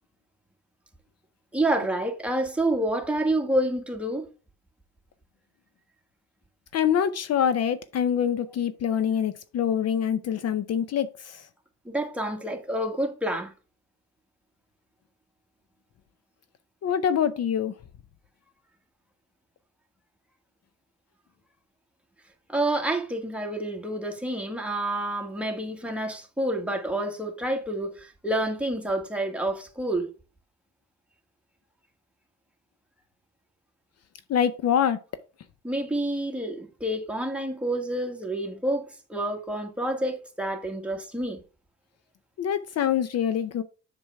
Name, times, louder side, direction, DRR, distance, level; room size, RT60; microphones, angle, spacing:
voice 1, 1.5-4.3 11.9-13.5 22.5-30.1 35.6-41.4, right 1 dB, 5° right, 1.7 m, -28 dB
voice 2, 6.7-11.5 16.8-17.7 34.3-35.0 42.4-43.6, left 8 dB, 55° left, 0.6 m, -25 dB
7.1 x 6.1 x 3.4 m
cardioid pair, 90°, 30 cm